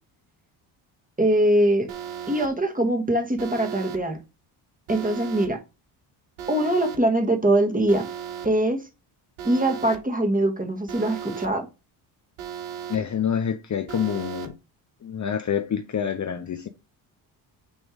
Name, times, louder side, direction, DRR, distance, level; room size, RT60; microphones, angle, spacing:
voice 1, 1.2-1.9 2.3-4.2 4.9-5.6 6.5-8.1 8.4-8.8 9.4-11.7, right 1 dB, 15° right, 1.8 m, -22 dB
Alarm, 1.9-2.5 3.4-4.0 4.9-5.5 6.4-7.0 7.9-8.5 9.4-10.0 10.9-11.5 12.4-13.0 13.9-14.5, right 9 dB, 80° right, 1.4 m, -35 dB
voice 2, 12.9-14.6 15.0-16.7, left 8 dB, 35° left, 0.8 m, -27 dB
6.3 x 3.5 x 5.0 m
supercardioid pair, 60°, 49 cm